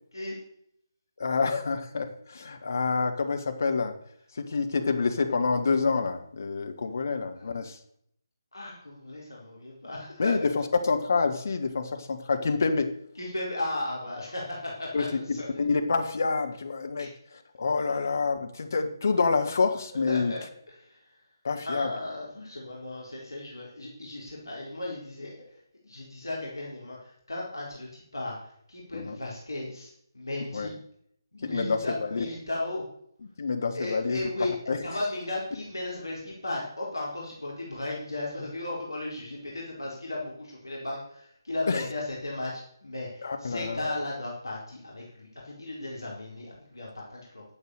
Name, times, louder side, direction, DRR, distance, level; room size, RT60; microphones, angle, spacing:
voice 1, 1.2-3.9 4.3-7.8 10.2-12.9 14.9-17.1 17.5-20.3 21.4-21.9 28.9-29.2 30.5-30.7 31.4-32.3 33.4-34.2 34.7-34.8 41.7-41.9 43.2-43.8, left 4 dB, 45° left, 6 dB, 1.6 m, -27 dB
voice 2, 8.5-10.3 13.2-15.6 17.0-17.1 20.1-20.4 20.8-21.0 21.6-25.3 25.8-30.8 31.3-32.8 33.7-34.5 34.8-47.4, left 2 dB, 70° left, -3 dB, 4.2 m, -35 dB
11.0 x 8.0 x 6.6 m, 0.69 s
figure-of-eight pair, 150°, 2 cm